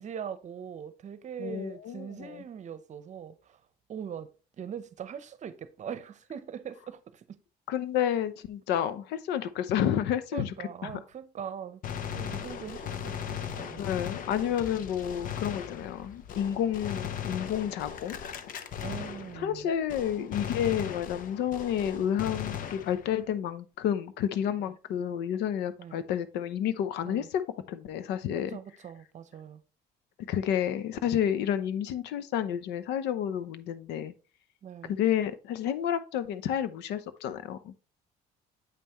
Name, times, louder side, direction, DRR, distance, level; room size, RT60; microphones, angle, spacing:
voice 1, 0.0-3.6 3.9-4.3 4.6-7.4 10.3-11.8 12.1-14.2 16.5-16.6 18.8-19.7 24.6-24.8 25.8-26.0 27.0-27.3 28.3-29.6 34.6-35.0, right 8 dB, 45° right, 0.8 m, -41 dB
voice 2, 1.4-2.4 7.7-10.5 10.8-10.9 13.8-18.2 19.4-27.4 27.7-28.5 30.3-34.1 34.9-37.7, left 9 dB, 85° left, 0.7 m, -30 dB
Gunshot gunfire, 11.8-19.6 19.9-23.3, left 8 dB, 55° left, 0.8 m, -38 dB
8.2 x 5.5 x 3.0 m
cardioid pair, 110°, 17 cm